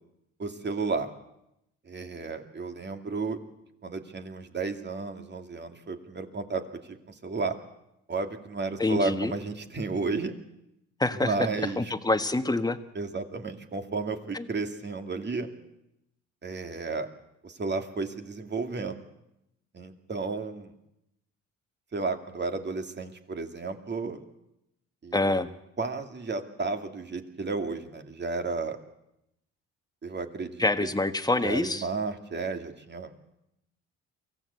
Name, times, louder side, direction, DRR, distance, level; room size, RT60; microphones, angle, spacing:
voice 1, 0.4-1.1 1.9-3.4 3.8-7.0 7.2-7.5 8.1-10.3 11.2-11.9 12.9-15.5 16.4-17.1 17.4-19.0 19.7-20.7 21.9-24.2 25.0-25.2 25.8-28.8 30.0-30.7 31.4-33.2, right 3 dB, 35° right, 6 dB, 2.4 m, -32 dB
voice 2, 8.8-9.3 11.0-11.3 11.8-12.8 14.3-14.5 25.1-25.5 30.6-31.9, left 2 dB, 15° left, 9 dB, 1.5 m, -26 dB
24.0 x 16.0 x 8.3 m, 0.84 s
cardioid pair, 90°, 30 cm